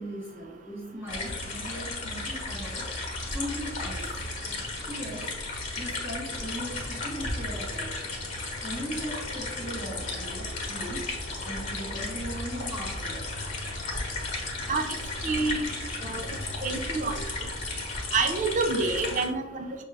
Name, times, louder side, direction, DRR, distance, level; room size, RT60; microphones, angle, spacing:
voice 1, 0.0-2.9 3.3-4.1 4.4-5.4 5.8-8.1 8.6-11.1 11.4-13.4 15.0-15.2 16.6-17.7 19.0-19.2, equal, 10° right, -6 dB, 0.8 m, -39 dB
sound 1, 1.1-19.3, left 2 dB, 40° left, 1.1 m, -34 dB
voice 2, 15.2-15.7 16.0-16.3 16.6-17.2 18.1-19.7, right 3 dB, 40° right, 5 dB, 0.4 m, -27 dB
5.9 x 2.3 x 3.2 m, 0.99 s
head